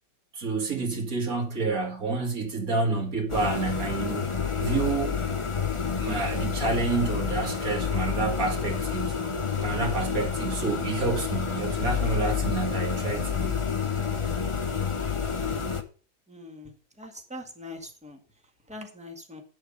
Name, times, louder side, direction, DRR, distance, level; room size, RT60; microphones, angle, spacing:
voice 1, 0.3-4.3 4.6-5.2 6.0-9.2 9.6-13.6, right 3 dB, 45° right, 2.4 m, -29 dB
sound 1, 3.3-15.8, left 6 dB, 30° left, 0.5 m, -29 dB
voice 2, 16.3-16.7 17.0-18.2 18.7-19.4, left 1 dB, 5° right, 1.7 m, -42 dB
10.5 x 7.4 x 5.3 m
omnidirectional pair, 2.1 m